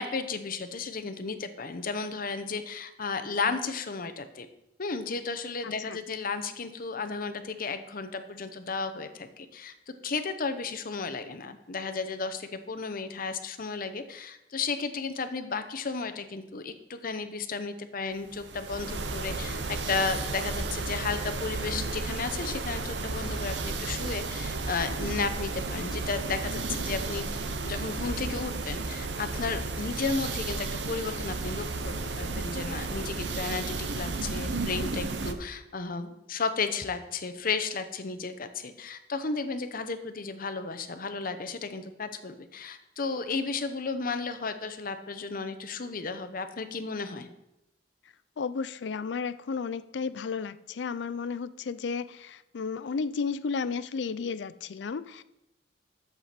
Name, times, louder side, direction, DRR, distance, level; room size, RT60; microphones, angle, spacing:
voice 1, 0.0-4.5 4.8-9.7 10.0-27.2 27.6-47.3, left 4 dB, 50° left, 9 dB, 0.8 m, -33 dB
voice 2, 5.6-6.0 48.4-55.2, left 5 dB, 75° left, 15 dB, 0.4 m, -33 dB
sound 1, 18.3-35.3, right 3 dB, 75° right, 0.8 m, -33 dB
11.5 x 7.7 x 4.3 m, 0.89 s
head